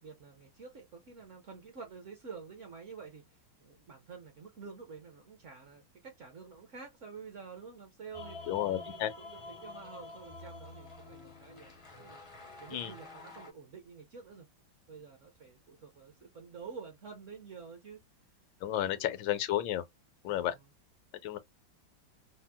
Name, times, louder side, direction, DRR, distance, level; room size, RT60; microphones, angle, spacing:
voice 1, 0.0-11.7 12.0-12.2 12.6-14.5 14.9-18.0 18.7-19.2 20.3-20.7, right 5 dB, 55° right, 0.8 m, -49 dB
sound 1, 8.1-13.5, left 3 dB, 45° left, 0.4 m, -48 dB
voice 2, 8.5-9.1 12.7-12.9 18.6-19.8 20.2-20.5 21.2-21.4, left 12 dB, 80° left, 1.4 m, -32 dB
4.4 x 2.0 x 2.2 m
omnidirectional pair, 2.1 m